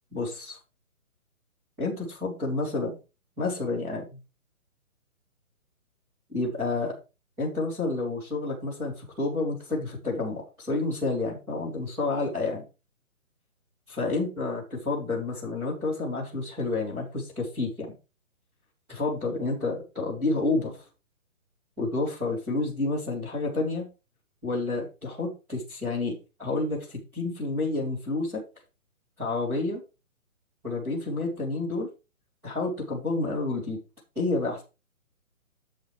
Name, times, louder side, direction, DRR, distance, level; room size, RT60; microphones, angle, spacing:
voice 1, 0.1-0.6 1.8-3.0 3.4-4.2 6.3-7.0 7.4-12.6 13.9-18.0 18.9-20.8 21.8-23.9 24.4-28.4 29.2-29.8 30.6-31.9 32.4-33.8 34.2-34.6, left 3 dB, 5° right, -8 dB, 2.0 m, -29 dB
10.5 x 7.3 x 3.2 m, 0.30 s
hypercardioid pair, 175°, 43 cm